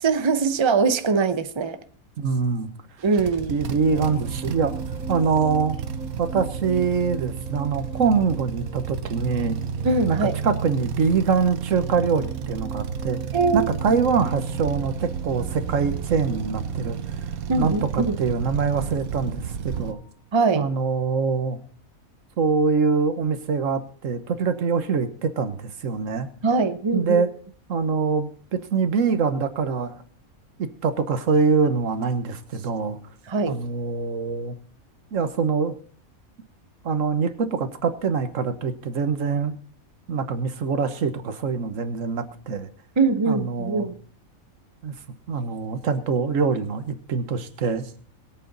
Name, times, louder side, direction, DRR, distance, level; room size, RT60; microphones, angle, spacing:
voice 1, 0.0-1.8 3.0-3.6 9.8-10.3 13.3-13.7 17.5-18.2 20.3-20.7 26.4-27.2 33.3-33.6 43.0-43.9, right 4 dB, 25° right, 10 dB, 0.7 m, -22 dB
voice 2, 2.2-2.7 3.5-4.8 5.1-5.8 6.2-9.6 10.1-13.2 13.5-17.0 17.6-20.0 20.5-21.6 22.4-26.3 26.9-27.3 27.7-30.0 30.6-33.0 33.5-34.6 35.1-35.8 36.8-39.6 40.1-42.7 43.3-43.9 44.8-45.0 45.3-47.9, right 5 dB, 65° right, 9 dB, 1.6 m, -24 dB
sound 1, 3.0-19.9, right 7 dB, 90° right, 1.3 m, -32 dB
sound 2, 3.5-20.2 20.5-20.8, right 3 dB, 5° right, 3.3 m, -42 dB
22.0 x 8.3 x 4.1 m, 0.42 s
omnidirectional pair, 1.4 m